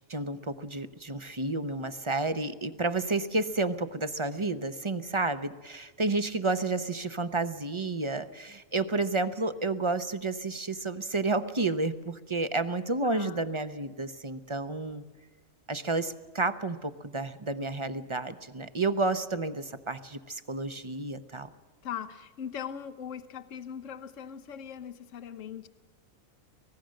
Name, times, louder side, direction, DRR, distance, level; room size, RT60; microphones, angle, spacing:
voice 1, 0.1-15.0 15.7-21.5, right 3 dB, 30° right, 0.7 m, -31 dB
voice 2, 13.0-13.4 21.8-25.7, left 8 dB, 70° left, 1.2 m, -40 dB
25.0 x 18.0 x 6.5 m
omnidirectional pair, 1.4 m